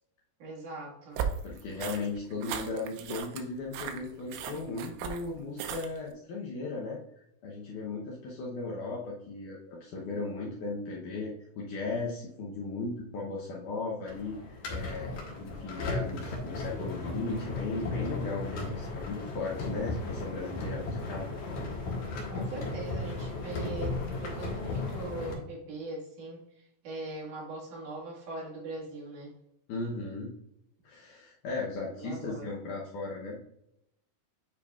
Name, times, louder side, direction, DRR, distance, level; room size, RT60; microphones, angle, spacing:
voice 1, 0.4-1.3 22.3-29.3 32.0-32.5, right 2 dB, 55° right, -5 dB, 3.0 m, -41 dB
sound 1, 1.2-6.1, right 8 dB, 80° right, 2.4 m, -38 dB
voice 2, 1.4-7.0 7.4-21.3 29.7-30.3 30.8-33.5, left 3 dB, 80° left, -4 dB, 1.8 m, -37 dB
sound 2, 14.0-25.3, left 2 dB, 60° left, 2.2 m, -35 dB
8.4 x 4.8 x 2.4 m, 0.80 s
omnidirectional pair, 4.9 m